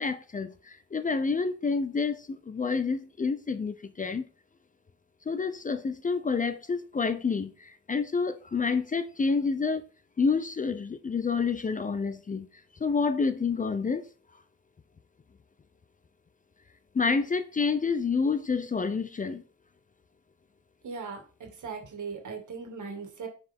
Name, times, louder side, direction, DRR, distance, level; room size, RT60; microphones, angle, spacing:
voice 1, 0.0-4.3 5.3-9.8 10.2-12.5 12.8-14.0 16.9-19.4, left 4 dB, 25° left, 0.4 m, -28 dB
voice 2, 20.8-23.3, right 5 dB, 75° right, 2.0 m, -39 dB
9.6 x 4.9 x 3.5 m
wide cardioid pair, 170°, 30 cm